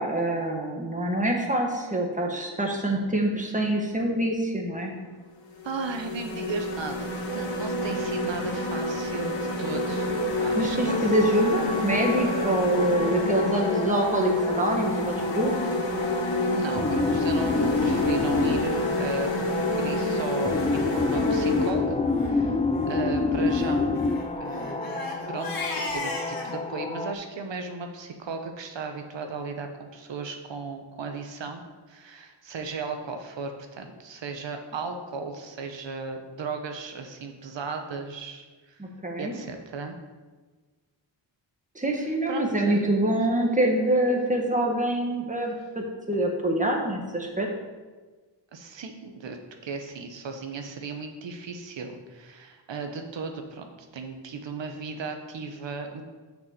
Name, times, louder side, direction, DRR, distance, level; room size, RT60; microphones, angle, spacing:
voice 1, 0.0-4.9 10.5-15.5 38.8-39.3 41.7-47.5, right 1 dB, 15° right, 1 dB, 1.4 m, -25 dB
sound 1, 4.8-5.0 5.5-21.7, left 1 dB, 75° left, 1.7 m, -29 dB
voice 2, 5.6-10.1 10.4-11.2 16.5-19.3 19.8-22.6 22.9-23.9 24.4-24.9 25.3-25.5 25.9-31.6 31.9-38.8 39.2-39.9 42.3-42.9 45.4-45.5 48.5-49.4 49.6-56.0, right 4 dB, 70° right, 5 dB, 1.1 m, -36 dB
sound 2, 10.9-27.1, left 3 dB, 15° left, 0.3 m, -29 dB
Crying sobbing, 20.6-20.7 20.9-21.0 21.4-21.6 22.1-22.3 23.5-26.5, left 3 dB, 50° left, 1.5 m, -36 dB
6.5 x 5.4 x 6.7 m, 1.3 s
wide cardioid pair, 115°, 46 cm